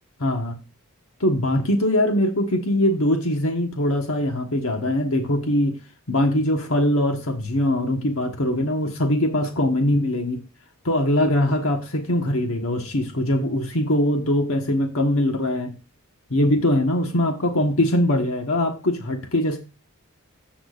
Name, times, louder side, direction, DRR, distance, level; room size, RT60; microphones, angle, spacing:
voice 1, 0.2-0.6 1.2-5.7 6.1-10.4 10.8-15.7 16.3-19.6, left 1 dB, 65° left, 4 dB, 1.3 m, -22 dB
14.5 x 6.1 x 2.5 m, 0.30 s
head